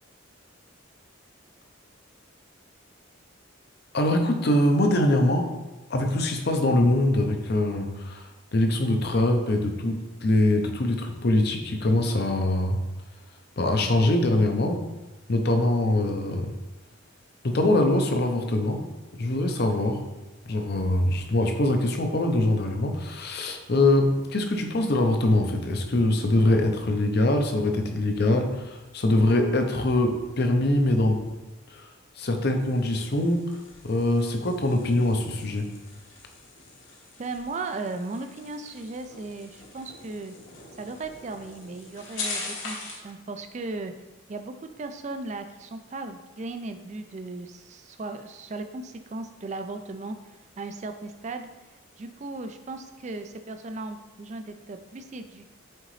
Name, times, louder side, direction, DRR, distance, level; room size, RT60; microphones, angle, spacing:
voice 1, 3.9-5.5 5.9-12.8 13.3-14.9 15.3-16.6 17.4-18.9 19.1-20.0 20.4-31.3 31.7-35.7, left 1 dB, 50° left, 4 dB, 0.7 m, -23 dB
sound 1, 32.6-43.1, left 3 dB, 65° left, 1.4 m, -42 dB
voice 2, 37.2-40.3 40.8-43.9 44.3-51.5 52.0-55.5, right 3 dB, 35° right, 7 dB, 0.4 m, -36 dB
7.7 x 3.8 x 3.2 m, 1.1 s
head